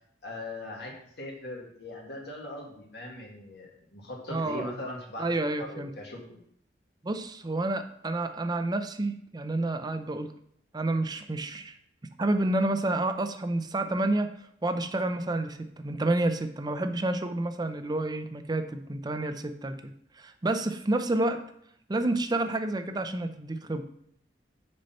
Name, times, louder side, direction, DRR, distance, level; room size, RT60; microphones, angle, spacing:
voice 1, 0.2-6.4, left 1 dB, 65° left, -1 dB, 1.8 m, -40 dB
voice 2, 4.3-4.7 5.2-5.9 7.0-10.3 10.7-11.7 12.2-14.3 14.6-21.4 21.9-23.8, right 2 dB, 25° right, 8 dB, 0.5 m, -29 dB
6.4 x 5.6 x 4.2 m, 0.68 s
head